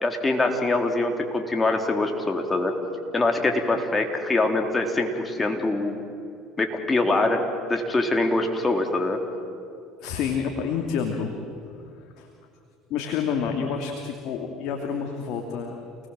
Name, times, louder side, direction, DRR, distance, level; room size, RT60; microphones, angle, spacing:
voice 1, 0.0-2.8 3.1-5.9 6.6-9.2, left 2 dB, 20° left, 4 dB, 3.9 m, -24 dB
voice 2, 10.0-11.3 12.2-12.3 12.9-15.7, left 6 dB, 65° left, 2 dB, 2.8 m, -28 dB
28.5 x 20.0 x 7.7 m, 2.6 s
hypercardioid pair, 80°, 0 cm